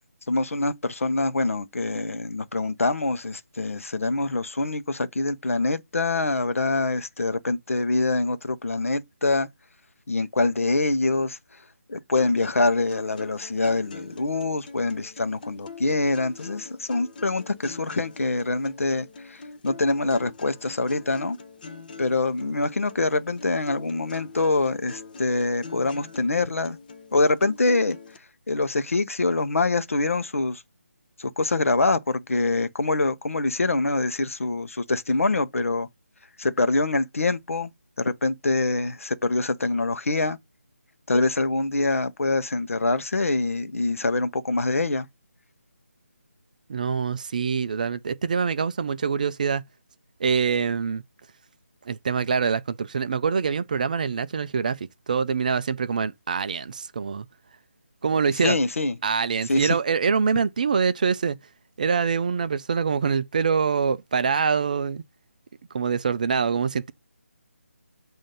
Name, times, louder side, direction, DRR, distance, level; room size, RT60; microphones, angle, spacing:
voice 1, 0.3-9.5 10.1-11.4 11.9-21.4 22.0-26.8 27.1-28.0 28.5-30.6 31.2-35.9 36.4-37.7 38.0-40.4 41.1-45.1 58.4-58.9 59.5-59.8, left 2 dB, 70° left, 0.8 m, -25 dB
sound 1, 12.2-28.2, left 4 dB, 35° left, 0.7 m, -44 dB
voice 2, 46.7-49.6 50.2-51.0 51.9-54.8 55.1-57.2 58.0-58.6 59.0-61.4 61.8-65.0 65.7-66.9, right 6 dB, 35° right, 0.3 m, -24 dB
7.5 x 2.7 x 5.2 m
figure-of-eight pair, 155°, 8 cm